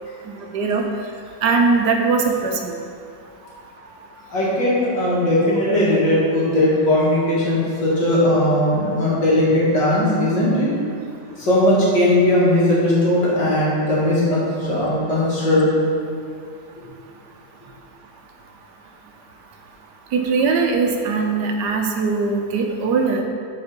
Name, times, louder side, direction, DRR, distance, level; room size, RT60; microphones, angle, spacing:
voice 1, 0.3-0.8 1.4-2.7 20.1-23.2, right 4 dB, 75° right, 3 dB, 1.3 m, -20 dB
voice 2, 4.3-10.7 11.4-15.7, left 1 dB, 85° left, -6 dB, 2.5 m, -18 dB
7.1 x 4.9 x 5.2 m, 2.3 s
omnidirectional pair, 1.9 m